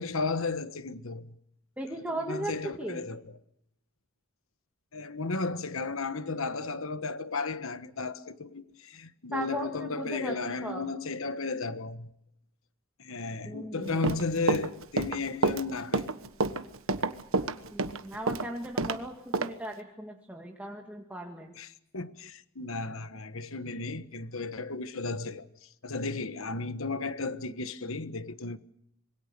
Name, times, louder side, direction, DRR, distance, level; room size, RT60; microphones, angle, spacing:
voice 1, 0.0-1.3 1.9-3.4 4.9-12.1 13.0-16.1 21.6-28.6, left 3 dB, 65° left, 1.4 m, -34 dB
voice 2, 1.8-2.5 2.8-3.0 9.3-10.3 10.6-10.9 13.5-14.1 17.7-21.5, right 1 dB, 5° right, 2.0 m, -37 dB
Run, 13.9-19.0 19.3-19.5, right 3 dB, 65° right, 1.4 m, -28 dB
26.0 x 22.5 x 6.8 m
head